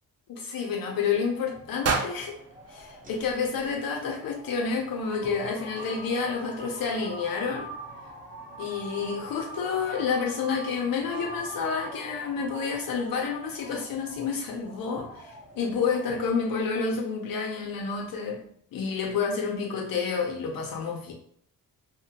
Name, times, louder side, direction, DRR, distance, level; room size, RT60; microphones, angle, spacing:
voice 1, 0.3-2.4 2.7-7.7 8.6-18.4 18.7-21.1, left 5 dB, 70° left, 0 dB, 0.5 m, -29 dB
sound 1, 1.1-16.3, right 1 dB, 25° right, 0.8 m, -44 dB
sound 2, 1.8-4.0, right 4 dB, 45° right, 0.4 m, -32 dB
2.7 x 2.1 x 2.7 m, 0.64 s
cardioid pair, 130°, 36 cm